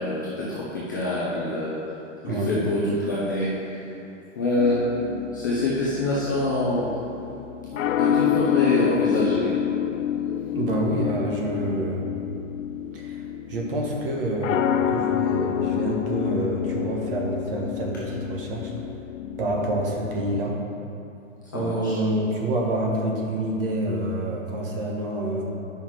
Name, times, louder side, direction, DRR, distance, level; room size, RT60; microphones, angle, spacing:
voice 1, 0.0-1.8 2.2-3.9 4.4-4.8 5.3-6.9 8.0-9.6 21.5-22.0, left 1 dB, 15° left, -8 dB, 0.5 m, -25 dB
voice 2, 2.2-2.6 10.5-12.0 12.9-13.2 13.5-18.7 19.4-20.6 21.5-25.4, right 1 dB, 45° right, -1 dB, 1.5 m, -27 dB
sound 1, 4.6-20.4, left 10 dB, 75° left, 0.6 m, -28 dB
9.6 x 5.7 x 4.7 m, 2.7 s
hypercardioid pair, 170°, 39 cm